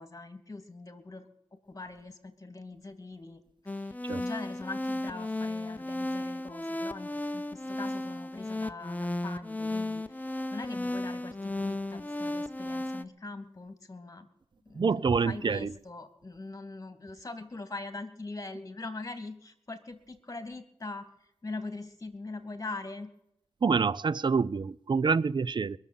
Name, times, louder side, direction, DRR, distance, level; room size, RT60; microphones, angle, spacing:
voice 1, 0.0-14.3 14.6-21.1 21.4-23.1, left 3 dB, 30° left, 2.5 m, -42 dB
sound 1, 3.7-13.0, left 1 dB, 15° left, 0.9 m, -34 dB
voice 2, 14.8-15.7 23.6-25.8, right 5 dB, 45° right, 0.5 m, -27 dB
21.5 x 7.3 x 9.1 m
cardioid pair, 55°, 11 cm